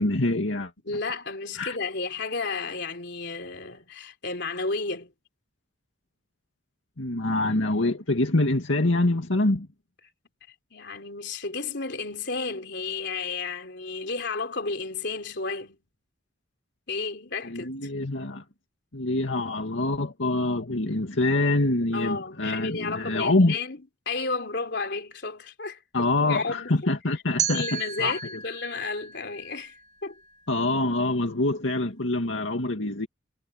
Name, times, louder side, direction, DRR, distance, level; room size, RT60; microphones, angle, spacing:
voice 1, 0.0-0.7 1.6-1.8 7.0-9.7 17.5-18.4 18.9-23.6 25.9-28.2 30.5-33.1, left 2 dB, 85° left, 2.1 m, -25 dB
voice 2, 0.9-5.1 10.7-15.8 16.9-17.9 21.9-25.8 26.2-26.7 27.5-29.7 30.0-30.2, left 4 dB, 65° left, 3.8 m, -32 dB
sound 1, 27.4-30.3, right 8 dB, 40° right, 2.2 m, -34 dB
head